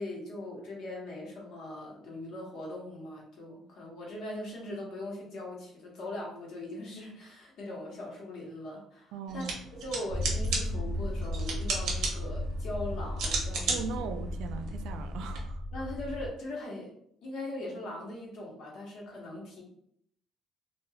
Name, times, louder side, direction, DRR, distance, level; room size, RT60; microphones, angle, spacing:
voice 1, 0.0-9.5 9.8-13.8 15.7-16.9 17.2-19.6, left 1 dB, 55° left, 0.9 m, -40 dB
voice 2, 9.1-9.5 13.7-15.6, right 5 dB, 90° right, 0.3 m, -38 dB
sound 1, 9.3-15.4, right 4 dB, 65° right, 0.8 m, -36 dB
sound 2, 10.1-16.3, left 1 dB, 80° left, 0.8 m, -35 dB
3.3 x 2.3 x 2.2 m
cardioid pair, 165°, 0 cm